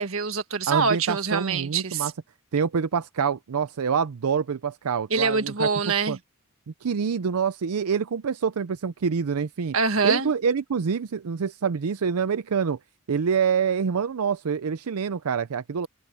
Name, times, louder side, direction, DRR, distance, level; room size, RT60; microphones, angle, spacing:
voice 1, 0.0-2.1 5.1-6.2 9.7-10.3, right 4 dB, 65° right, 1.7 m, -25 dB
voice 2, 0.7-2.1 2.5-5.7 6.1-6.2 6.8-9.8 10.0-12.8 13.1-15.9, right 6 dB, 85° right, 0.5 m, -26 dB
head